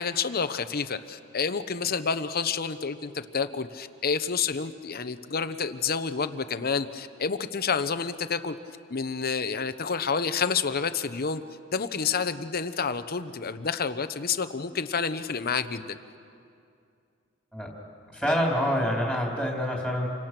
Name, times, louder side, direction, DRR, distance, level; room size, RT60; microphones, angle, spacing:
voice 1, 0.0-8.5 8.9-11.4 11.7-16.0, left 5 dB, 50° left, 11 dB, 0.9 m, -29 dB
voice 2, 18.1-20.1, equal, ahead, -2 dB, 3.7 m, -26 dB
28.5 x 25.0 x 6.1 m, 2.5 s
head